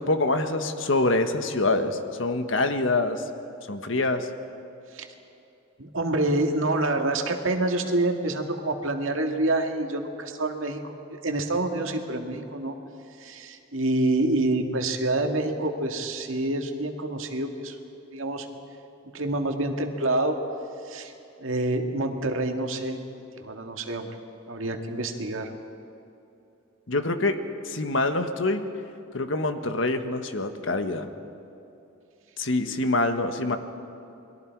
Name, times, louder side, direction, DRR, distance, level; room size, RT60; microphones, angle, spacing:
voice 1, 0.0-3.2 3.7-4.3 26.9-27.4 27.6-28.6 29.1-31.1 32.4-33.6, left 2 dB, 70° left, 8 dB, 1.4 m, -25 dB
voice 2, 5.8-12.8 13.2-17.8 18.1-18.6 19.1-20.4 20.8-21.1 21.4-23.0 23.3-24.1 24.5-25.5, right 2 dB, 75° right, 4 dB, 2.0 m, -27 dB
29.5 x 22.0 x 4.7 m, 2.9 s
head